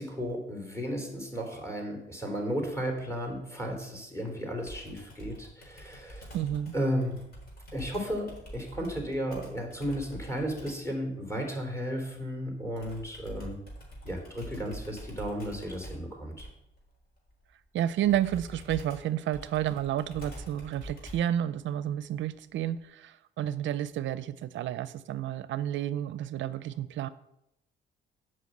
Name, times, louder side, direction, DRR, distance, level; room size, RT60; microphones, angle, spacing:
voice 1, 0.0-6.3 6.7-7.3 7.7-13.6 14.0-16.5, equal, 15° left, 2 dB, 3.1 m, -34 dB
Computer keyboard, 4.7-10.9 12.8-21.4, equal, 50° left, 3.9 m, -46 dB
voice 2, 6.3-6.7 17.7-27.1, right 11 dB, 70° right, 15 dB, 0.5 m, -31 dB
8.3 x 5.5 x 7.8 m, 0.84 s
cardioid pair, 90°, 20 cm